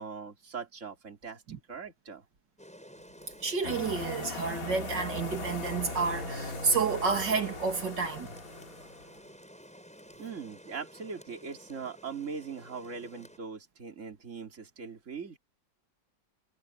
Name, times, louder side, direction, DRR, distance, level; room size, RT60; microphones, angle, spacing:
voice 1, 0.0-1.4 1.7-2.2 10.2-15.4, right 5 dB, 40° right, 3.1 m, -41 dB
Rain, 2.6-13.4, equal, 5° left, 7.3 m, -51 dB
voice 2, 3.4-8.3, right 5 dB, 75° right, 3.0 m, -30 dB
sound 1, 3.6-9.1, left 3 dB, 50° left, 2.8 m, -39 dB
omnidirectional pair, 1.9 m